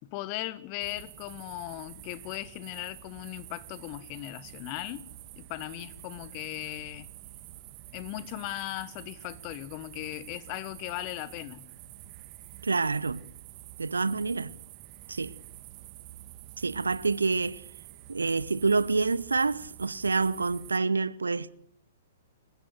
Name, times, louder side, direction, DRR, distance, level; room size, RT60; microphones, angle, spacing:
voice 1, 0.0-5.0 5.3-7.1 7.9-11.7, left 16 dB, 35° left, 1.5 m, -38 dB
sound 1, 0.8-20.8, right 15 dB, 35° right, 1.6 m, -48 dB
voice 2, 12.6-13.2 13.8-14.5 15.1-15.3 16.6-17.6 18.1-21.5, right 4 dB, 75° right, 0.9 m, -27 dB
28.0 x 15.5 x 8.0 m
figure-of-eight pair, 110°, 0 cm